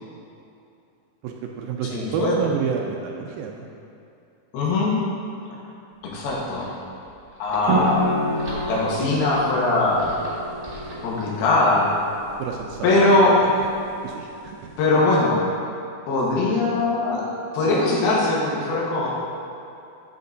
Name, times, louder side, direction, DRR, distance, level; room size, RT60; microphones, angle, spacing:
voice 1, 1.2-3.7 12.4-13.0 14.0-14.7, right 6 dB, 85° right, 1 dB, 2.1 m, -29 dB
voice 2, 1.9-2.4 4.5-5.0 6.0-6.7 7.4-8.1 8.7-10.1 11.0-11.9 12.8-13.4 14.8-15.4 16.1-17.2 17.5-19.1, left 2 dB, 75° left, -5 dB, 3.2 m, -21 dB
sound 1, 5.9-11.1, right 1 dB, 30° right, 1.0 m, -41 dB
sound 2, 7.7-15.0, right 1 dB, 65° right, 2.2 m, -30 dB
12.0 x 8.3 x 2.7 m, 2.6 s
omnidirectional pair, 4.7 m